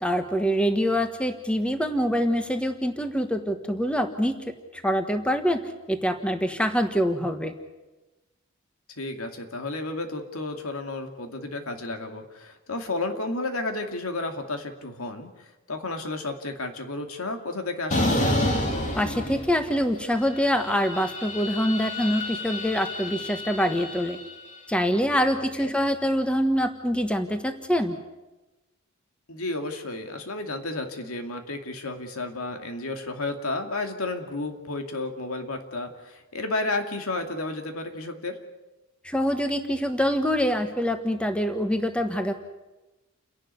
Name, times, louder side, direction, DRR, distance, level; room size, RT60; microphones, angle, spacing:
voice 1, 0.0-4.3 4.7-5.6 5.9-7.5 18.9-24.2 24.7-28.0 39.0-42.3, equal, 5° left, 7 dB, 1.4 m, -25 dB
voice 2, 9.0-18.3 25.3-25.7 29.3-38.4, left 2 dB, 85° left, 5 dB, 2.5 m, -32 dB
sound 1, 17.9-19.9 20.2-24.5, left 1 dB, 35° left, 3.0 m, -29 dB
29.5 x 11.5 x 9.6 m, 1.1 s
head